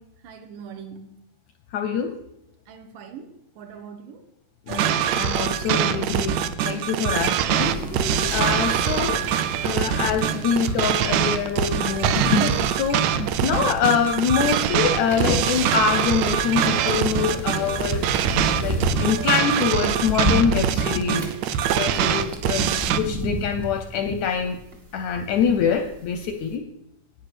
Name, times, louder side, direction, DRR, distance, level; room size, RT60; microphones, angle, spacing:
voice 1, 0.2-1.1 2.7-4.3, right 6 dB, 75° right, 2.6 m, -42 dB
voice 2, 1.7-2.2 4.7-6.4 6.7-9.2 9.6-18.1 18.6-24.6 24.9-26.6, left 7 dB, 75° left, 1.7 m, -25 dB
sound 1, 4.7-23.0, right 9 dB, 90° right, 1.5 m, -23 dB
sound 2, 7.6-26.2 26.5-26.6, left 1 dB, 35° right, 1.0 m, -31 dB
9.7 x 9.1 x 6.0 m
omnidirectional pair, 4.0 m